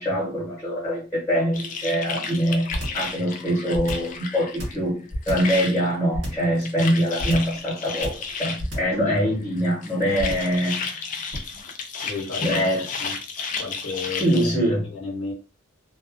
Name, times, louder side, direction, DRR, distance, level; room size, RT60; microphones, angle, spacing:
voice 1, 0.0-5.0 5.3-11.0 12.4-12.8 14.2-14.8, equal, 10° left, -5 dB, 1.1 m, -24 dB
sound 1, 1.5-4.8 5.0-5.9 6.3-8.7 9.6-14.6, left 5 dB, 40° left, 0.3 m, -33 dB
sound 2, 2.7-3.1 3.7-4.2 4.6-5.6 6.1-6.5 7.2-7.6 8.0-8.3 8.6-9.0 10.2-10.6 11.3-11.6, equal, 65° right, 1.2 m, -30 dB
voice 2, 12.0-12.7 13.0-13.2 13.6-15.3, left 4 dB, 75° left, -3 dB, 0.7 m, -33 dB
2.3 x 2.2 x 2.5 m, 0.34 s
head